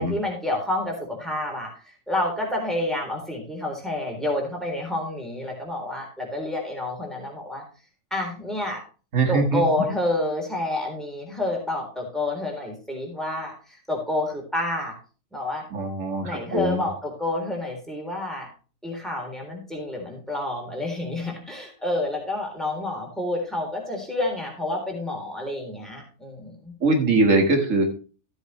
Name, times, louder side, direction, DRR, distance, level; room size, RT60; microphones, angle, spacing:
voice 1, 0.0-1.7 2.1-7.6 8.1-8.8 9.3-14.9 15.3-15.6 16.2-18.5 18.8-26.7, left 1 dB, ahead, 0 dB, 3.6 m, -29 dB
voice 2, 9.1-9.6 15.7-16.8 26.8-27.8, right 2 dB, 85° right, 4 dB, 2.2 m, -21 dB
13.5 x 8.1 x 3.2 m, 0.35 s
omnidirectional pair, 1.3 m